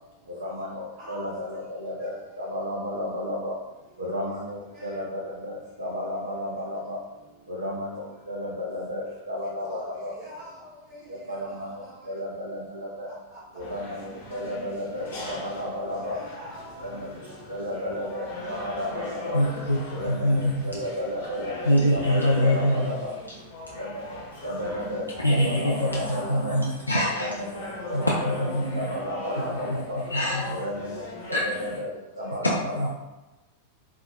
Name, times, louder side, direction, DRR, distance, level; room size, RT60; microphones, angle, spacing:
voice 1, 0.3-3.6 4.0-7.0 7.5-10.2 11.1-13.1 13.5-16.2 16.8-19.5 19.9-23.1 23.7-26.6 27.1-30.0 30.6-32.9, left 1 dB, 75° right, -3 dB, 0.5 m, -33 dB
voice 2, 10.2-10.6 14.3-14.4 16.0-16.8 24.6-24.8 32.2-32.3, right 1 dB, 30° right, -6 dB, 1.3 m, -43 dB
sound 1, 13.6-31.8, left 2 dB, 60° left, 1.0 m, -39 dB
voice 3, 19.3-20.8 21.7-23.0 25.2-29.0 29.5-30.6 31.3-31.8 32.4-32.9, equal, 85° left, -4 dB, 0.3 m, -25 dB
3.4 x 2.1 x 2.5 m, 1.0 s
figure-of-eight pair, 90°, 0 cm